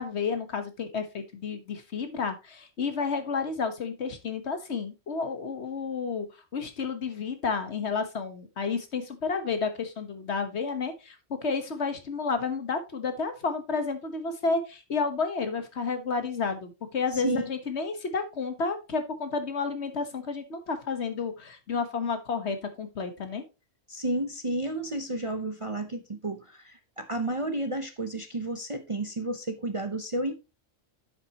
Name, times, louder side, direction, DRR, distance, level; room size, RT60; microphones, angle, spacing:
voice 1, 0.0-6.3 6.5-23.4, left 4 dB, 60° left, 1.5 m, -31 dB
voice 2, 17.1-17.5 23.9-30.3, right 1 dB, 30° right, 0.6 m, -31 dB
9.4 x 7.6 x 2.9 m
omnidirectional pair, 1.3 m